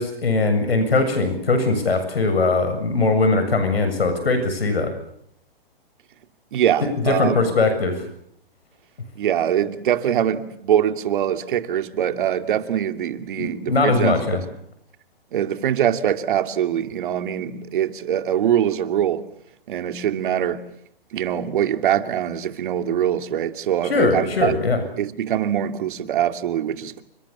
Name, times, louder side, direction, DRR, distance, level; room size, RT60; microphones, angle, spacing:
voice 1, 0.0-4.9 7.1-8.0 13.4-14.4 23.9-24.8, left 3 dB, 90° left, 7.3 m, -20 dB
voice 2, 6.5-7.4 9.2-14.4 15.3-19.2 19.7-20.6 21.1-24.5 25.0-27.0, right 10 dB, 60° right, 2.7 m, -23 dB
29.5 x 25.5 x 7.1 m
hypercardioid pair, 140°, 29 cm